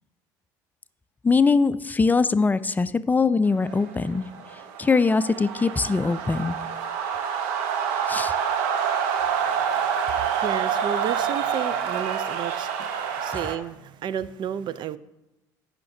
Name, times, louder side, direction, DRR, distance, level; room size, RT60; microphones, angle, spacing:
voice 1, 1.2-4.3 4.8-6.6 8.1-8.3, left 4 dB, 20° left, 14 dB, 0.4 m, -22 dB
sound 1, 3.7-13.6, right 7 dB, 80° right, 0.9 m, -27 dB
voice 2, 9.2-15.0, right 9 dB, 55° right, 16 dB, 0.4 m, -33 dB
17.5 x 5.9 x 2.7 m, 0.96 s
hypercardioid pair, 75°, 10 cm